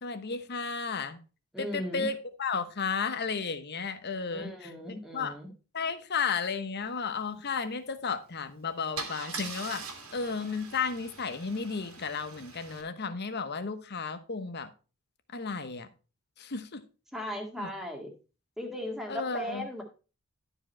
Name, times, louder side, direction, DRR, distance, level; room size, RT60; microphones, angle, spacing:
voice 1, 0.0-1.2 1.6-5.4 5.7-9.8 10.1-14.7 15.3-15.9 16.4-16.8 17.6-17.7 19.1-19.7, left 5 dB, 50° left, 1.0 m, -33 dB
voice 2, 1.5-2.1 4.3-5.5 17.1-18.1 18.6-19.8, equal, ahead, 2.0 m, -37 dB
Car / Engine starting / Idling, 8.2-8.4 9.0-12.8, right 5 dB, 85° right, 2.3 m, -42 dB
12.0 x 5.0 x 4.4 m
head